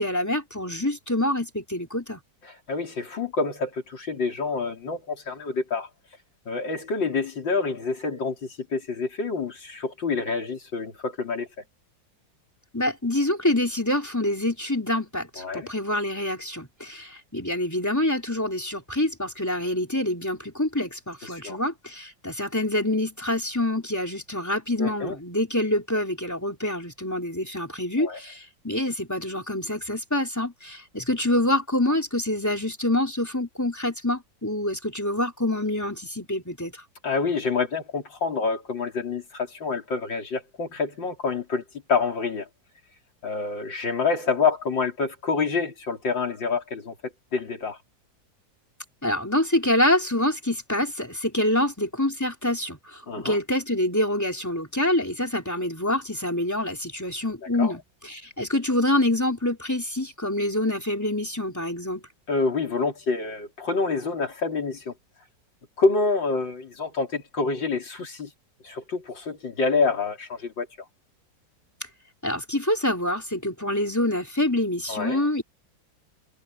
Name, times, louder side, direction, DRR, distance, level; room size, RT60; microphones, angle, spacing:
voice 1, 0.0-2.2 12.7-36.7 49.0-57.8 58.1-62.1 72.2-75.4, left 1 dB, 10° left, 4.0 m, -26 dB
voice 2, 2.5-5.9 6.5-11.5 15.4-15.7 21.2-21.6 24.8-25.2 28.0-28.2 37.0-41.6 41.9-42.5 43.2-47.8 53.1-53.4 57.6-57.7 62.3-64.9 65.8-68.3 68.6-70.7 74.9-75.2, left 4 dB, 80° left, 4.4 m, -27 dB
omnidirectional pair, 2.0 m